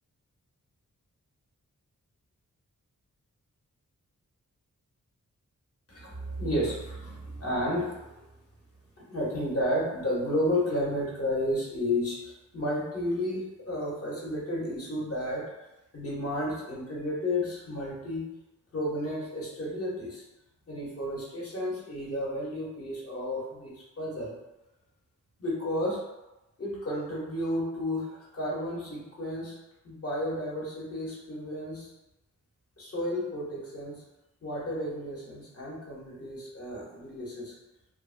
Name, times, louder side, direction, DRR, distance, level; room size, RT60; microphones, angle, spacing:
voice 1, 5.9-8.2 9.1-15.4 15.9-18.3 18.7-20.2 20.7-24.3 25.4-26.0 26.6-29.6 29.8-31.9 32.8-34.0 34.4-37.5, left 1 dB, 45° left, -5 dB, 0.9 m, -32 dB
2.9 x 2.1 x 2.5 m, 0.98 s
wide cardioid pair, 125°, 32 cm